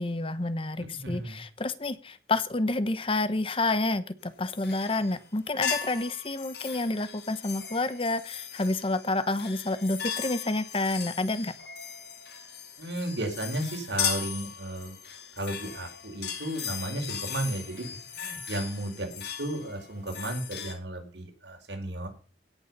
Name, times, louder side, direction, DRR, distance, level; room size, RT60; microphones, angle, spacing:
voice 1, 0.0-11.5, left 2 dB, 30° left, 14 dB, 0.9 m, -29 dB
voice 2, 0.8-1.4 12.8-14.9 15.4-17.8 18.1-22.1, right 1 dB, 85° right, 2 dB, 4.6 m, -34 dB
sound 1, 4.4-5.2 5.6-20.7, left 8 dB, 65° left, 3.4 m, -37 dB
17.0 x 7.1 x 5.4 m, 0.38 s
head